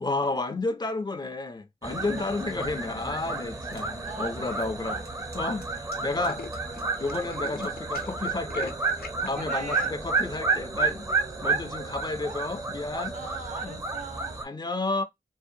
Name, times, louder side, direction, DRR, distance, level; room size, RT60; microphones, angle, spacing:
voice 1, 0.0-5.0 5.3-5.7 6.0-6.4 7.0-8.8 9.2-11.1 11.4-13.1 13.6-13.8 14.4-15.0, left 2 dB, 25° left, 0.4 m, -31 dB
sound 1, 1.8-14.4, right 4 dB, 20° right, 0.5 m, -31 dB
voice 2, 2.0-2.4 3.1-3.2 4.0-5.1 9.3-9.9 11.3-11.4 13.1-14.4, right 4 dB, 55° right, 0.7 m, -41 dB
Tools, 3.2-3.6 4.2-4.3 4.6-4.7 4.9-5.1 5.4-5.5 5.8-9.3, left 5 dB, 75° left, 0.6 m, -44 dB
sound 2, 3.7-3.9 4.4-4.5 5.0-7.3 7.6-8.1 8.9-9.2, right 2 dB, 85° right, 1.2 m, -53 dB
2.6 x 2.1 x 2.5 m
wide cardioid pair, 70°, 16 cm